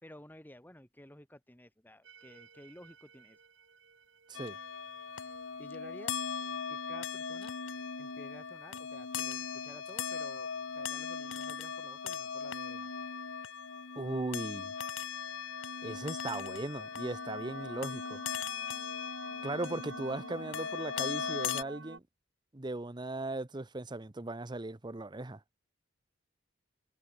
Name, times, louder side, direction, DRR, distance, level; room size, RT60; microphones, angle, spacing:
voice 1, 0.0-3.4 5.1-5.3 5.6-6.2 6.7-7.6 8.0-12.9 18.7-18.9, left 1 dB, 10° left, 2.6 m, -54 dB
sound 1, 2.0-8.4 15.3-22.0, right 3 dB, 75° right, 4.7 m, -52 dB
Chewing mastication, 4.2-4.5 5.0-6.5 7.1-7.6 7.9-8.1 8.5-8.6 8.8-8.9 9.3-9.4 9.5-9.6 9.8-10.2, left 7 dB, 30° left, 4.0 m, -65 dB
sound 2, 4.3-21.6, left 6 dB, 85° left, 1.3 m, -39 dB
voice 2, 14.0-14.7 15.8-18.2 19.4-22.0 22.5-25.4, right 2 dB, 25° right, 0.8 m, -38 dB
head